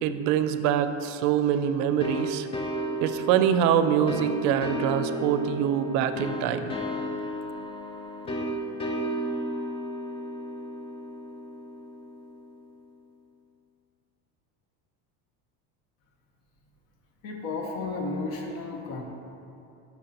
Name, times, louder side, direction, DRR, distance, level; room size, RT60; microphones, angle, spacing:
voice 1, 0.0-2.5 3.0-6.7, right 9 dB, 70° right, 10 dB, 0.5 m, -24 dB
sound 1, 2.0-12.5, right 1 dB, 20° left, 0.5 m, -33 dB
voice 2, 17.2-19.0, left 3 dB, 55° left, 1 dB, 1.1 m, -33 dB
9.0 x 5.9 x 2.9 m, 2.7 s
cardioid pair, 140°, 29 cm